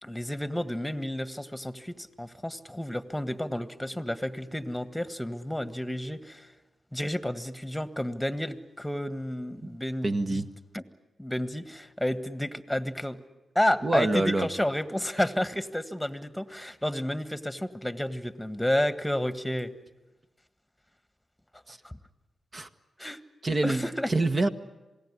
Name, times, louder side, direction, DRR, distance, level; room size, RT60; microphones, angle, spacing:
voice 1, 0.0-6.5 6.9-10.4 10.7-10.8 11.2-13.2 13.5-19.7 21.8-21.9 23.0-23.2 23.6-24.1, left 1 dB, 5° left, 11 dB, 1.7 m, -31 dB
voice 2, 10.0-10.5 13.8-14.5 21.7-21.8 22.5-22.7 23.4-23.8 24.1-24.5, right 2 dB, 40° right, 8 dB, 1.4 m, -26 dB
27.0 x 18.5 x 9.9 m, 1.1 s
supercardioid pair, 40°, 0 cm